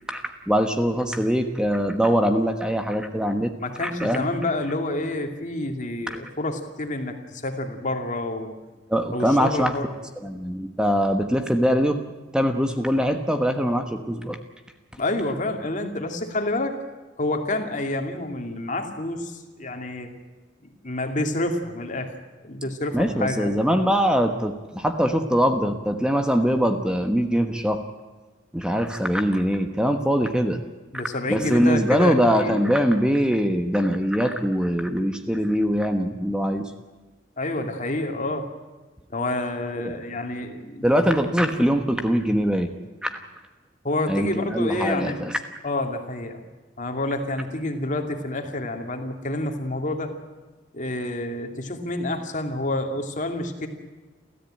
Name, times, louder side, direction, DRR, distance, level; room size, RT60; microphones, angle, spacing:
voice 1, 0.1-3.5 3.8-4.2 8.9-9.7 10.2-12.0 12.3-14.4 22.9-27.8 28.5-30.6 31.3-36.7 39.8-39.9 40.8-42.7 43.0-43.1 44.1-45.3, equal, 5° right, 6 dB, 1.2 m, -22 dB
voice 2, 3.6-8.5 9.1-9.9 15.0-16.8 17.2-20.1 20.8-22.1 22.4-23.5 30.9-32.7 37.4-38.5 39.1-40.8 43.8-45.2 45.6-46.4 46.8-50.2 50.7-53.7, left 2 dB, 45° left, 5 dB, 2.6 m, -28 dB
30.0 x 14.0 x 9.0 m, 1.3 s
head